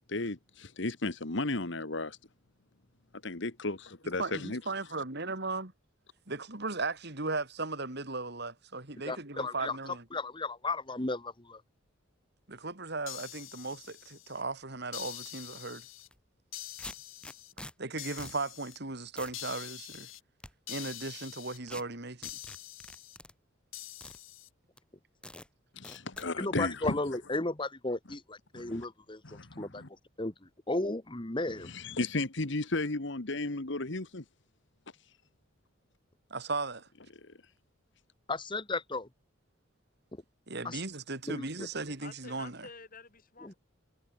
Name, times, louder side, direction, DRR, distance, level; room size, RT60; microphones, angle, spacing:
voice 1, 0.1-2.2 3.2-4.6 25.7-27.0 28.5-28.8 29.2-29.9 31.6-34.2 37.2-37.3, left 2 dB, 60° left, 1.7 m, -34 dB
voice 2, 4.2-5.7 6.3-10.0 12.5-15.9 17.8-20.1 20.7-22.3 36.3-36.9 40.5-42.7, right 3 dB, 55° right, 2.9 m, -37 dB
voice 3, 9.0-9.8 10.1-11.6 26.4-29.8 30.2-31.7 38.3-39.1 40.6-40.8 41.2-41.4 43.4-43.5, left 2 dB, 25° left, 1.6 m, -34 dB
sound 1, 13.1-14.4 14.9-16.1 16.5-17.5 18.0-18.8 19.3-20.2 20.7-21.6 22.2-23.2 23.7-24.5, left 15 dB, 80° left, 1.4 m, -45 dB
sound 2, 16.0-16.2 16.8-17.7 18.2-18.4 18.7-18.8 19.2-19.4 19.9-20.5 21.7-21.8 22.2-23.3 24.0-24.2 24.8-24.9 25.2-25.5 25.8-26.3, left 1 dB, 5° left, 1.6 m, -46 dB
voice 4, 42.0-43.6, left 4 dB, 45° left, 4.7 m, -49 dB
head